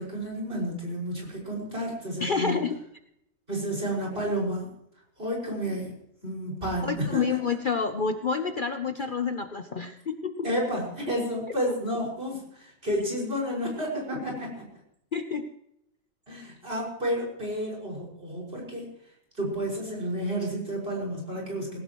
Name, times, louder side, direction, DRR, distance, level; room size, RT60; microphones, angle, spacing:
voice 1, 0.0-2.6 3.5-4.7 5.2-5.9 6.2-7.4 10.4-14.7 16.3-18.9 19.4-21.8, equal, 45° right, -1 dB, 6.1 m, -31 dB
voice 2, 2.2-2.8 6.8-10.5 15.1-15.5, left 5 dB, 45° left, 7 dB, 0.9 m, -28 dB
19.5 x 17.5 x 3.1 m, 0.75 s
omnidirectional pair, 1.4 m